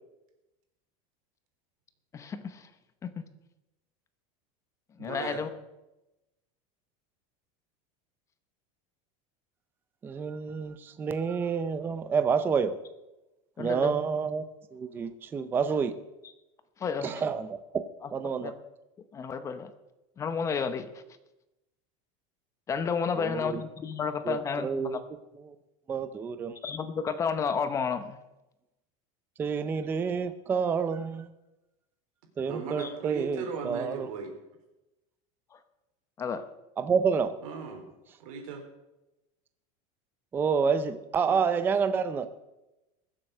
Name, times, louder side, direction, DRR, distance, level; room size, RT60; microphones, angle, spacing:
voice 1, 2.1-2.7 3.0-3.2 5.0-5.5 13.6-14.0 16.8-17.1 18.0-18.5 19.1-19.7 20.2-20.9 22.7-25.0 26.6-28.2 32.8-32.9 35.5-35.6 36.2-36.4, left 6 dB, 15° left, 11 dB, 0.7 m, -31 dB
voice 2, 5.0-5.4 32.4-34.3 37.4-37.9 38.2-38.6 41.3-41.4, right 5 dB, 90° right, 4 dB, 3.9 m, -37 dB
voice 3, 10.0-12.7 13.6-14.4 14.7-15.9 17.0-17.8 18.1-18.5 23.2-23.6 24.3-25.0 25.9-26.6 29.4-31.3 32.4-34.1 36.8-37.3 40.3-42.4, right 6 dB, 10° right, 11 dB, 0.5 m, -29 dB
21.5 x 7.7 x 6.6 m, 0.97 s
supercardioid pair, 175°, 17 cm